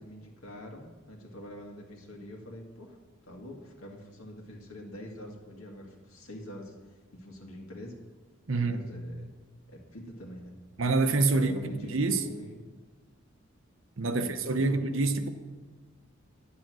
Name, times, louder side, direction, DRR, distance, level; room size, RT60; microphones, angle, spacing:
voice 1, 0.0-3.0 3.3-6.7 7.1-8.0 8.6-9.3 9.7-10.6 11.3-12.7 14.1-14.8, equal, 85° left, 2.1 m, -45 dB
voice 2, 8.5-8.8 10.8-11.5 11.9-12.3 14.0-15.3, right 3 dB, 70° right, 0.9 m, -26 dB
10.5 x 9.9 x 6.2 m
head